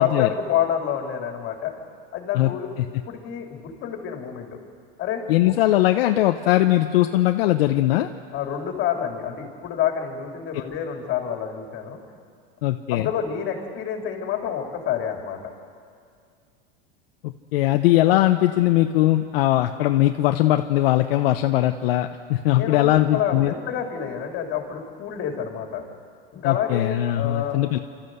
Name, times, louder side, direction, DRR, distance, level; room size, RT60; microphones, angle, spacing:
voice 1, 0.0-1.7 2.1-2.7 3.1-4.6 5.0-5.5 8.3-12.0 12.9-15.4 22.5-25.8 26.3-27.6, left 9 dB, 40° left, 2 dB, 3.5 m, -28 dB
voice 2, 5.3-8.1 12.6-13.1 17.2-23.5 26.4-27.8, left 15 dB, 75° left, 6 dB, 0.9 m, -20 dB
26.5 x 13.5 x 8.0 m, 2.2 s
supercardioid pair, 130°, 30 cm